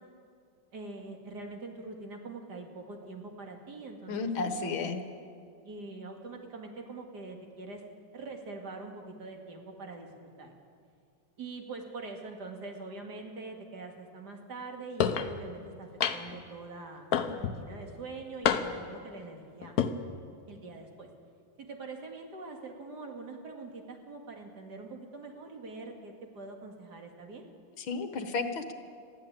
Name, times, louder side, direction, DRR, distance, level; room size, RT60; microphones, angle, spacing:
voice 1, 0.7-5.0 5.6-7.8 8.1-10.5 11.4-19.8 20.5-21.1 21.6-27.4, right 3 dB, 50° right, 2 dB, 2.8 m, -44 dB
voice 2, 4.1-5.0 27.8-28.7, left 4 dB, 70° left, 8 dB, 2.1 m, -32 dB
sound 1, 15.0-15.3 16.0-16.4 17.1-17.6 18.4-18.9 19.6-19.9, left 8 dB, 55° left, 1.2 m, -28 dB
22.0 x 14.0 x 8.9 m, 2.3 s
omnidirectional pair, 2.3 m